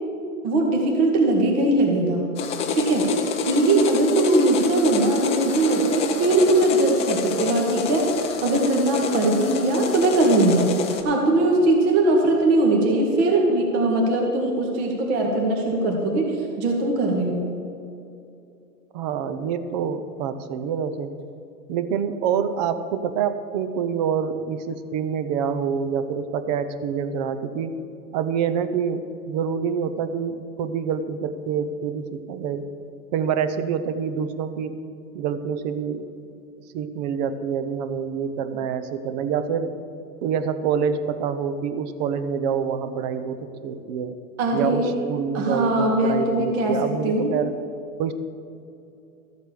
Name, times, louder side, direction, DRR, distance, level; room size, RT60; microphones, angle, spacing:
voice 1, 0.4-2.3 2.8-3.2 3.5-17.4 44.4-44.9 45.3-46.8 47.0-47.3, right 2 dB, 45° right, 0 dB, 2.0 m, -20 dB
sound 1, 2.4-11.0, left 4 dB, 15° left, 0.6 m, -27 dB
voice 2, 18.9-21.1 21.7-27.7 28.1-32.7 33.1-34.8 35.1-36.1 36.7-39.7 40.2-44.2 44.5-47.6 48.0-48.1, right 7 dB, 30° right, 11 dB, 0.6 m, -26 dB
13.5 x 8.0 x 6.7 m, 2.7 s
hypercardioid pair, 145°, 47 cm